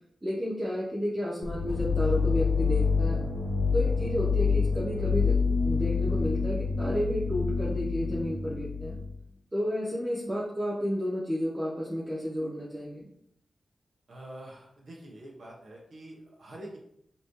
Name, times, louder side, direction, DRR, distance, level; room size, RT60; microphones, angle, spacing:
voice 1, 0.2-3.2 3.7-9.0 9.5-13.1, equal, 20° right, -5 dB, 0.8 m, -31 dB
sound 1, 1.4-9.1, left 5 dB, 70° left, 0.8 m, -27 dB
voice 2, 14.1-16.8, right 1 dB, 65° right, -3 dB, 1.1 m, -46 dB
5.4 x 3.0 x 3.2 m, 0.73 s
wide cardioid pair, 110°, 0 cm